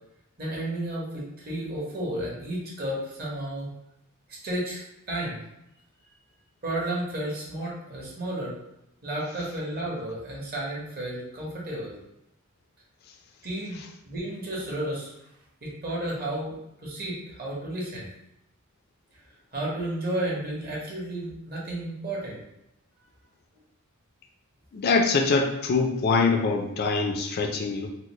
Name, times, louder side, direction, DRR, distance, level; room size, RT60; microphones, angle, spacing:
voice 1, 0.4-3.7 4.4-5.4 6.6-8.6 9.0-12.0 13.4-13.8 14.0-15.1 15.6-16.5 16.8-18.1 19.5-22.4, right 1 dB, 50° right, -4 dB, 1.1 m, -32 dB
voice 2, 24.7-27.9, left 4 dB, 50° left, 3 dB, 0.4 m, -24 dB
4.0 x 2.1 x 3.0 m, 0.84 s
head